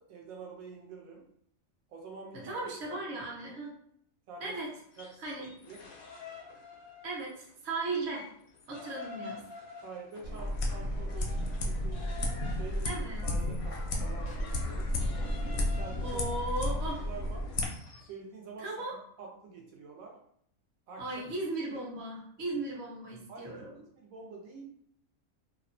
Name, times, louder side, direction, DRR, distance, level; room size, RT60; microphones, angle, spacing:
voice 1, 0.1-1.2 1.9-3.1 4.3-4.6 5.0-5.8 9.8-12.0 12.6-14.9 15.4-16.1 16.6-17.4 18.1-20.2 20.9-21.2 23.3-23.6 23.9-24.7, right 4 dB, 80° right, -1 dB, 1.0 m, -47 dB
voice 2, 2.3-3.7 4.4-4.7 5.2-5.5 7.0-8.2 8.7-9.4 12.8-13.3 16.0-17.0 18.6-19.0 21.0-23.7, right 2 dB, 55° right, -3 dB, 0.9 m, -36 dB
sound 1, 4.8-7.5 7.9-18.1, left 4 dB, 90° left, 1.0 m, -49 dB
sound 2, 10.2-17.7, left 1 dB, 65° left, 0.7 m, -32 dB
2.7 x 2.1 x 2.5 m, 0.68 s
omnidirectional pair, 1.5 m